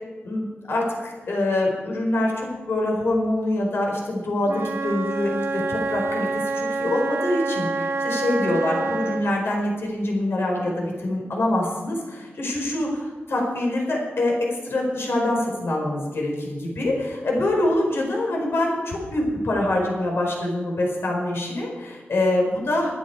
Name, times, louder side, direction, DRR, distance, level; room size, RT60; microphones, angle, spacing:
voice 1, 0.2-6.3 6.5-22.9, left 1 dB, 70° left, 0 dB, 4.4 m, -25 dB
Wind instrument woodwind instrument, 4.4-9.4, right 3 dB, 85° right, 1.2 m, -27 dB
21.5 x 9.6 x 4.6 m, 1.3 s
wide cardioid pair, 130°, 4 cm